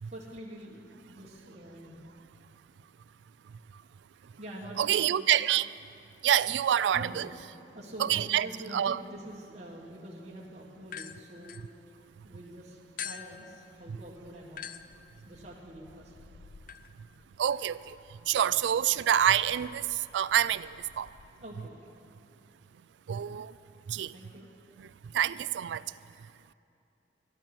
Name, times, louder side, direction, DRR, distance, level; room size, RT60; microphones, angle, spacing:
voice 1, 0.0-2.6 3.2-3.3 3.7-3.8 4.2-5.1 6.2-6.3 6.6-7.2 7.7-11.6 12.2-14.7 15.2-16.1 21.4-21.7 24.1-24.5, right 1 dB, 40° right, -5 dB, 1.6 m, -46 dB
voice 2, 4.8-5.7 6.2-7.3 8.0-8.5 8.7-9.0 17.4-17.8 18.3-19.8 20.1-20.7 21.0-21.1 23.1-23.5 23.9-24.1 25.1-25.8, right 10 dB, 85° right, 18 dB, 0.3 m, -26 dB
sound 1, 10.8-12.3 13.0-21.3, left 8 dB, 50° left, 0.4 m, -48 dB
13.0 x 12.5 x 6.0 m, 2.7 s
head